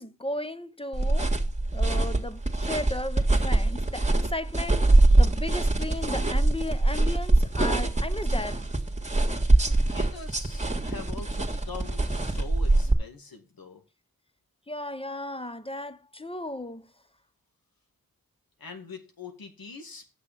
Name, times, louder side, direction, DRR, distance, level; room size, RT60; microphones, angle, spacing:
voice 1, 0.0-1.3 1.7-8.6 14.7-16.9, left 1 dB, 15° left, 1.0 m, -35 dB
sound 1, 0.9-12.9, right 2 dB, 20° right, 1.9 m, -23 dB
voice 2, 9.6-13.8 18.6-20.2, left 4 dB, 85° left, 2.0 m, -43 dB
8.0 x 6.5 x 6.8 m
cardioid pair, 45°, 35 cm